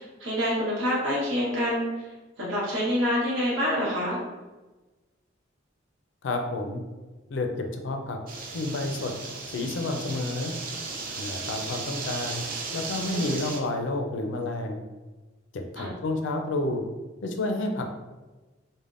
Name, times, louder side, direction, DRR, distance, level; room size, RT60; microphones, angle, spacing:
voice 1, 0.0-1.9 2.4-4.2 13.1-13.4 15.8-15.9, equal, 75° right, -6 dB, 1.1 m, -27 dB
voice 2, 6.2-6.8 7.3-8.2 8.5-9.1 9.5-10.5 11.2-12.4 12.7-14.8 15.5-16.8 17.2-17.8, left 2 dB, 70° left, 4 dB, 0.4 m, -30 dB
sound 1, 8.3-13.6, right 4 dB, 50° right, 0.4 m, -36 dB
3.3 x 2.1 x 2.4 m, 1.2 s
head